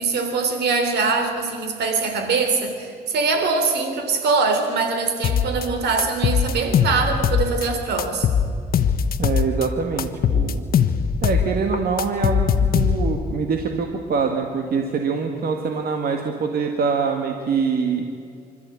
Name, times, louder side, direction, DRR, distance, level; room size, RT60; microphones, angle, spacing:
voice 1, 0.0-8.3, right 4 dB, 85° right, 6 dB, 3.2 m, -23 dB
sound 1, 5.2-5.7 6.0-7.7 8.0-9.7 10.0-11.5 11.7-13.2, left 7 dB, 65° left, 1.1 m, -20 dB
voice 2, 9.2-10.6 11.2-12.5 12.8-18.1, right 5 dB, 65° right, 4 dB, 1.8 m, -24 dB
26.0 x 13.5 x 8.5 m, 2.3 s
cardioid pair, 90°, 17 cm